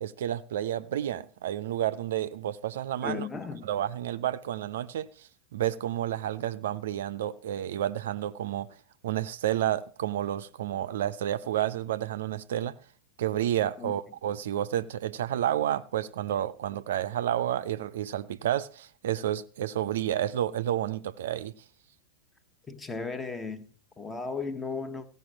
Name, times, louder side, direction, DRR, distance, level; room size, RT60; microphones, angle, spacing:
voice 1, 0.0-3.3 3.6-8.7 9.0-12.7 13.2-21.5, right 11 dB, 60° right, 0.5 m, -30 dB
voice 2, 3.0-3.7 13.8-13.9 22.7-23.6 24.0-25.1, left 4 dB, 15° left, 1.1 m, -35 dB
15.5 x 5.4 x 7.3 m
figure-of-eight pair, 90°, 0 cm